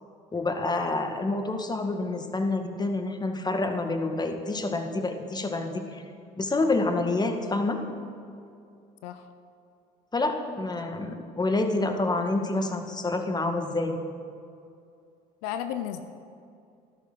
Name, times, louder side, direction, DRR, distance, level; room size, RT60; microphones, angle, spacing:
voice 1, 0.3-6.0 6.4-7.8 10.1-14.0, left 2 dB, 20° left, 6 dB, 1.8 m, -28 dB
voice 2, 15.4-16.0, left 10 dB, 85° left, 9 dB, 0.7 m, -33 dB
14.5 x 12.0 x 6.2 m, 2.5 s
supercardioid pair, 75°, 18 cm